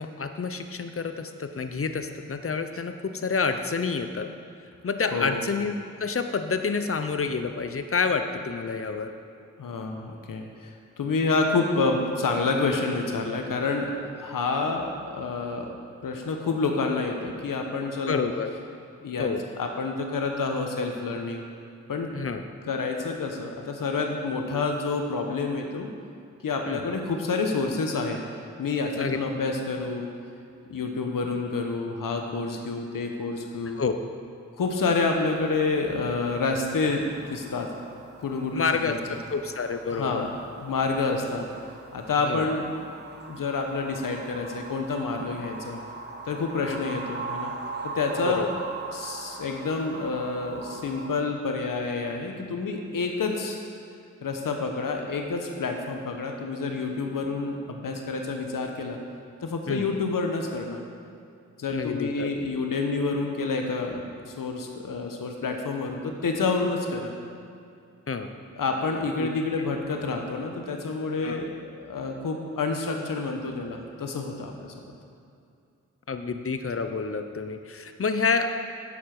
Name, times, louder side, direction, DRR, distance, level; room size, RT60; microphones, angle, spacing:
voice 1, 0.0-4.3 4.8-9.1 18.1-18.5 19.2-19.4 22.1-22.4 26.7-26.8 29.0-29.2 33.8-33.9 38.5-39.0 39.3-40.2 42.3-42.5 46.6-46.8 48.2-48.6 59.7-59.9 61.7-62.3 68.1-68.3 69.2-69.3 71.2-71.4 76.1-78.6, left 5 dB, 45° left, 7 dB, 0.8 m, -28 dB
voice 2, 5.1-5.4 9.6-13.9 14.2-15.7 16.0-18.2 19.0-19.3 19.6-21.4 21.9-22.1 22.7-25.9 26.4-28.2 28.6-30.1 30.7-33.8 34.6-37.7 38.2-39.0 39.9-40.3 40.5-41.5 41.9-43.0 43.3-45.8 46.3-47.5 47.8-48.5 48.9-53.6 54.2-59.0 59.4-60.8 61.6-67.1 68.6-74.7, left 3 dB, 80° left, 3 dB, 1.2 m, -28 dB
sound 1, 34.6-51.1, right 3 dB, 30° right, 1.1 m, -41 dB
8.2 x 7.1 x 6.0 m, 2.5 s
cardioid pair, 45°, 33 cm